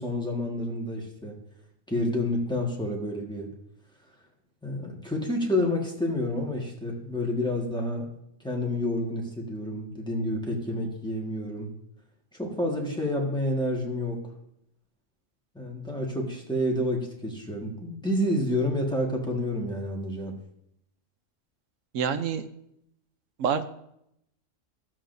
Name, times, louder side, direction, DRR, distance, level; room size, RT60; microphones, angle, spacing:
voice 1, 0.0-1.4 1.9-3.5 4.6-8.1 8.4-11.7 12.3-14.2 15.5-20.3, left 1 dB, 5° left, -2 dB, 1.4 m, -29 dB
voice 2, 21.9-22.4 23.4-23.7, right 7 dB, 80° right, 10 dB, 1.0 m, -26 dB
13.5 x 7.6 x 2.6 m, 0.77 s
omnidirectional pair, 1.3 m